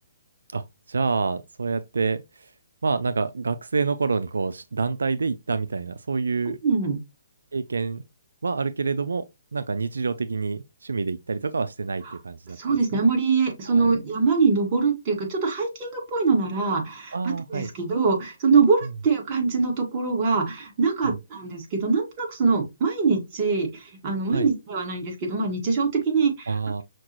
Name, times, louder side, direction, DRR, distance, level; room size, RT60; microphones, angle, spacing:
voice 1, 0.9-2.5 2.8-6.6 7.5-8.0 8.4-9.2 9.5-12.6 12.9-13.0 13.7-14.0 17.1-17.7 21.0-21.1 24.3-24.5 26.5-26.8, right 4 dB, 85° right, 0.3 m, -27 dB
voice 2, 6.6-7.0 12.0-12.2 12.6-26.6, right 4 dB, 35° right, 1.6 m, -23 dB
5.8 x 2.4 x 2.9 m
hypercardioid pair, 145°, 0 cm